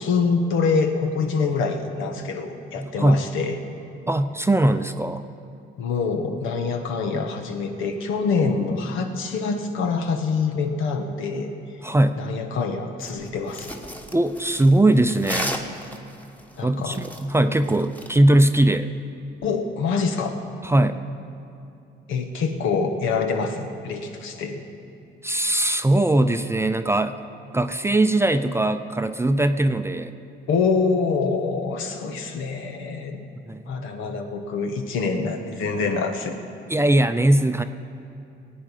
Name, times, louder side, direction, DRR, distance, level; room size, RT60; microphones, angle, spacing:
voice 1, 0.0-3.6 5.8-11.5 12.2-13.7 16.6-17.0 19.4-20.4 22.1-24.6 30.5-33.2 33.7-36.4, left 4 dB, 90° left, 5 dB, 1.3 m, -25 dB
voice 2, 2.8-3.3 4.1-5.2 11.8-12.2 14.1-15.5 16.6-18.9 20.6-21.0 25.2-27.2 27.5-30.1 33.5-33.9 36.7-37.6, right 1 dB, 15° right, 9 dB, 0.5 m, -20 dB
sound 1, 13.0-18.2, equal, 10° left, 1.2 m, -35 dB
19.5 x 8.7 x 5.5 m, 2.7 s
cardioid pair, 90°, 20 cm